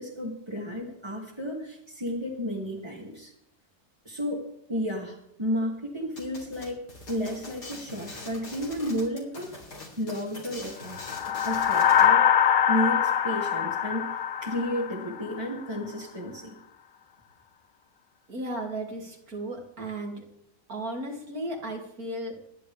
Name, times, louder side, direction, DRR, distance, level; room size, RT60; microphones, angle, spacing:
voice 1, 0.0-3.3 4.1-4.4 4.7-6.8 7.1-9.5 10.0-11.0 11.3-14.1 14.4-16.6, equal, 15° right, -5 dB, 2.3 m, -32 dB
sound 1, 6.2-12.1, left 2 dB, 85° left, 4.1 m, -43 dB
sound 2, 10.9-15.5, left 9 dB, 55° left, 0.5 m, -23 dB
voice 2, 18.3-20.2 20.7-22.4, right 1 dB, 60° right, 1 dB, 3.3 m, -35 dB
26.0 x 11.0 x 3.5 m, 0.75 s
omnidirectional pair, 1.7 m